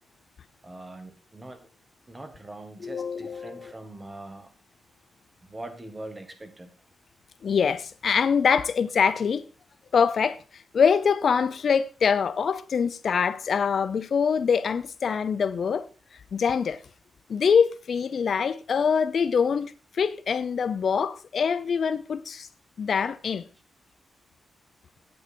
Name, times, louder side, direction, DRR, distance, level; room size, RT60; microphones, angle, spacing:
voice 1, 0.6-1.7 2.1-4.5 5.5-6.7, right 2 dB, 20° right, 1.6 m, -42 dB
voice 2, 2.8-3.7 7.4-9.4 9.9-10.4 10.7-15.9 16.3-16.8 17.3-22.5 22.8-23.4, left 6 dB, 55° left, 0.5 m, -24 dB
9.0 x 8.5 x 4.3 m
wide cardioid pair, 130°, 0 cm